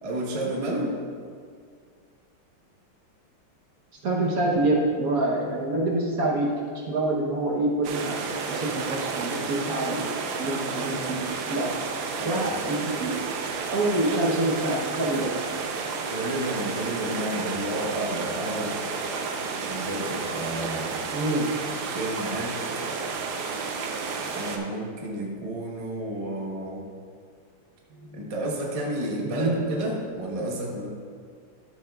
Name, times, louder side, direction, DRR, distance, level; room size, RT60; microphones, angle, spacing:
voice 1, 0.0-0.9 12.2-12.6 16.1-18.8 19.5-21.1 21.8-22.6 24.3-26.8 28.1-30.9, right 1 dB, 35° right, -2 dB, 0.6 m, -31 dB
voice 2, 4.0-6.5 6.9-8.2 8.5-10.1 10.4-11.7 12.2-13.2 13.7-15.3 21.1-21.5 28.0-28.3 29.2-29.5, right 2 dB, 55° right, -2 dB, 1.1 m, -26 dB
sound 1, 7.8-24.6, right 4 dB, 80° right, 1.6 m, -31 dB
12.5 x 7.2 x 2.3 m, 2.1 s
omnidirectional pair, 2.4 m